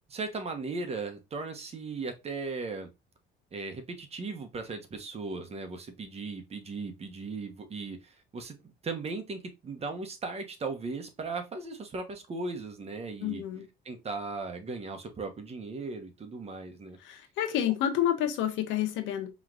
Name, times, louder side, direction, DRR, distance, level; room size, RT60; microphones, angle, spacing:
voice 1, 0.1-2.9 3.5-8.6 8.8-13.4 13.8-17.0 17.5-17.6, right 3 dB, 30° right, 1.0 m, -37 dB
voice 2, 13.2-13.7 17.0-19.3, left 11 dB, 80° left, 0.9 m, -29 dB
4.9 x 3.1 x 2.4 m
cardioid pair, 115°, 19 cm